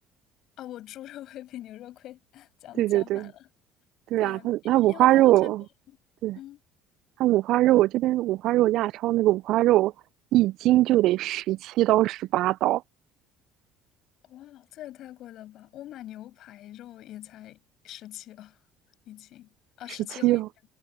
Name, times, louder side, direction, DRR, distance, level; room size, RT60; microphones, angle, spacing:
voice 1, 0.6-3.5 4.2-5.5 5.9-6.0 6.3-6.6 14.2-18.6 19.0-19.5 19.8-20.4, left 13 dB, 60° left, 6.8 m, -43 dB
voice 2, 2.8-3.3 4.1-5.6 6.2-6.4 7.2-9.9 10.3-12.8 20.2-20.5, right 15 dB, 65° right, 0.3 m, -22 dB
hypercardioid pair, 65°, 0 cm